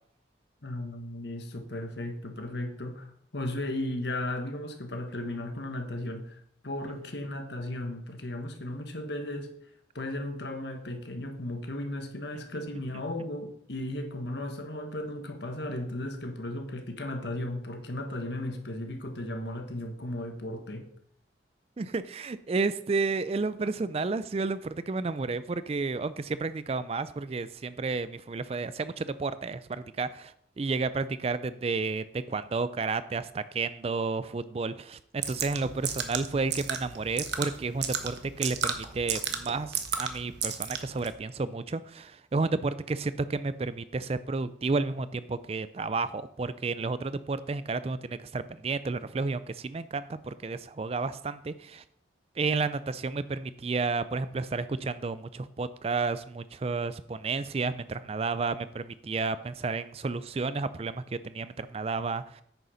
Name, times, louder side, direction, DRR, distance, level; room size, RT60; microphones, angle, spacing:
voice 1, 0.6-9.5 9.9-20.9, left 1 dB, 65° left, 5 dB, 1.5 m, -35 dB
voice 2, 21.8-51.8 52.4-62.4, right 4 dB, 30° right, 14 dB, 0.4 m, -31 dB
sound 1, 35.2-41.1, right 7 dB, 65° right, 1.1 m, -34 dB
9.1 x 6.6 x 5.6 m, 0.69 s
head